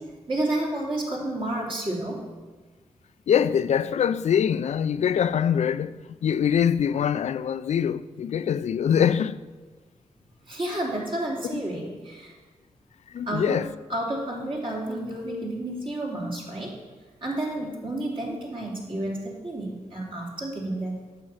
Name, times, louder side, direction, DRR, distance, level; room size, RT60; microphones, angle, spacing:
voice 1, 0.3-2.2 10.5-12.4 13.3-13.6 13.9-16.7 17.2-21.0, right 1 dB, 45° right, 3.2 m, -30 dB
voice 2, 3.3-9.4 11.5-11.6 13.1-13.7, left 8 dB, 70° left, 0.4 m, -24 dB
8.9 x 6.8 x 6.3 m
cardioid pair, 60°, 12 cm